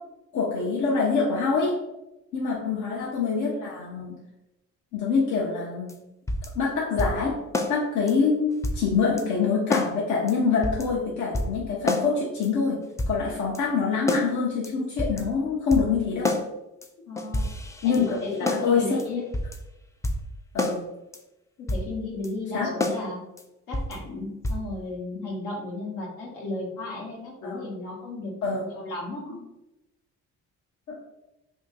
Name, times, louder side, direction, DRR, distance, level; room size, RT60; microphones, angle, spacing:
voice 1, 0.3-1.7 2.3-4.1 4.9-5.9 6.6-7.3 7.7-12.8 13.1-16.4 17.8-19.2 20.5-20.8 22.5-22.7 27.4-27.6 28.4-28.6 30.9-31.0, left 5 dB, 70° left, -4 dB, 0.8 m, -25 dB
voice 2, 2.5-2.9 17.1-17.4 17.8-19.2 21.6-23.2 23.7-29.4, left 2 dB, 90° left, -3 dB, 1.1 m, -35 dB
sound 1, 5.9-6.0 6.3-6.5 7.0-7.2 7.5-7.7 8.1-8.2 8.6-8.8 9.2-9.3 9.7-9.9 10.3-10.4 10.6-10.9 11.3-11.6 11.9-12.1 12.4-12.5 13.0-13.2 13.5-13.6 14.1-14.3 14.6-14.7 15.0-15.2 15.7-15.9 16.2-16.5 16.8-16.9 17.2-18.7 19.0-19.1 19.3-19.6 20.0-20.3 20.6-20.8 21.1-21.2 21.7-21.9 22.2-22.3 22.8-23.0 23.4-23.5 23.7-24.0 24.4-24.6, left 2 dB, 10° left, 0.3 m, -28 dB
2.8 x 2.6 x 3.9 m, 0.95 s
cardioid pair, 90°, 30 cm